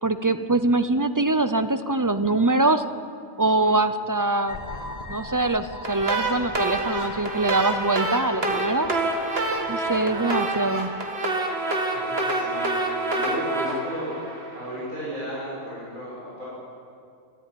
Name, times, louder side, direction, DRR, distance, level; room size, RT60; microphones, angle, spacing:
voice 1, 0.0-2.8 3.4-4.6 5.1-8.9 9.7-10.9, right 2 dB, 25° right, 10 dB, 0.4 m, -23 dB
voice 2, 3.4-3.8 8.4-8.6 9.6-10.1 11.9-14.2 14.5-16.4, equal, 80° right, -8 dB, 6.5 m, -35 dB
sound 1, 4.5-11.2, left 2 dB, 30° left, 1.8 m, -41 dB
sound 2, 5.8-14.9, right 2 dB, 50° right, 2.4 m, -27 dB
25.0 x 13.5 x 9.4 m, 2.4 s
omnidirectional pair, 1.4 m